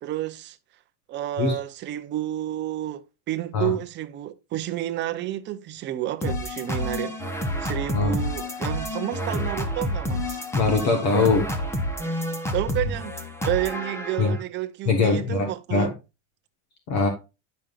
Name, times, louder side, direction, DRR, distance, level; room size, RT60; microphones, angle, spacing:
voice 1, 0.0-0.6 1.1-7.2 7.6-10.4 11.1-11.3 12.5-15.9, right 13 dB, 30° right, 0.7 m, -30 dB
sound 1, 6.2-14.4, equal, 5° left, 0.8 m, -29 dB
voice 2, 10.5-11.5 14.2-14.3 14.8-15.9 16.9-17.1, left 4 dB, 45° left, 1.5 m, -22 dB
10.0 x 5.4 x 2.5 m
supercardioid pair, 155°, 37 cm